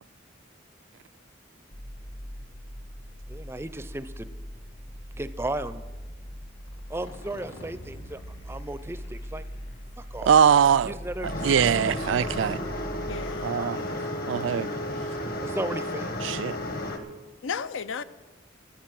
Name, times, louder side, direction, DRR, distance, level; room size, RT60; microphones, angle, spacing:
sound 1, 1.7-13.5, equal, 70° left, 2.3 m, -41 dB
voice 1, 3.3-4.3 5.2-5.9 6.9-9.4 10.0-10.3 10.8-11.7 13.6-13.9 15.4-16.5, right 1 dB, 15° right, 0.4 m, -35 dB
voice 2, 10.3-10.9 11.2-12.6 13.4-13.8 14.3-14.7 16.2-16.6, right 8 dB, 75° right, 0.3 m, -22 dB
sound 2, 11.2-17.0, left 1 dB, 50° left, 1.2 m, -32 dB
voice 3, 13.1-14.1 17.4-18.0, left 6 dB, 90° left, 0.6 m, -35 dB
10.0 x 10.0 x 7.7 m
head